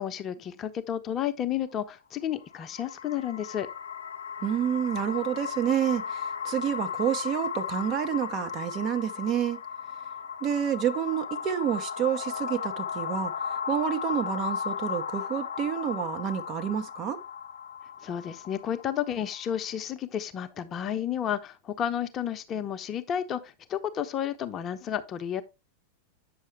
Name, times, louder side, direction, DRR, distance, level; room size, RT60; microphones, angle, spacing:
voice 1, 0.0-3.7 18.0-25.4, left 9 dB, 30° left, 0.8 m, -31 dB
sound 1, 2.4-19.6, left 7 dB, 70° left, 0.8 m, -35 dB
voice 2, 4.4-9.6 10.4-17.2, right 9 dB, 35° right, 0.8 m, -29 dB
8.6 x 6.4 x 3.2 m
figure-of-eight pair, 90°, 0 cm